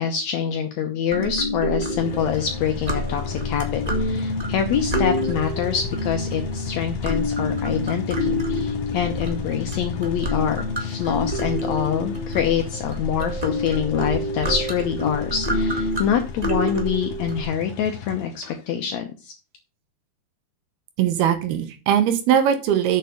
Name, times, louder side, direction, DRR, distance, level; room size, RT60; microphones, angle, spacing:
voice 1, 0.0-19.3, left 8 dB, 75° left, 5 dB, 1.6 m, -26 dB
sound 1, 1.1-17.4, left 1 dB, 40° right, 0.5 m, -27 dB
sound 2, 1.9-18.6, left 7 dB, 60° left, 2.6 m, -34 dB
voice 2, 21.0-23.0, right 9 dB, 80° right, 8 dB, 3.1 m, -20 dB
7.0 x 7.0 x 6.4 m, 0.31 s
omnidirectional pair, 4.4 m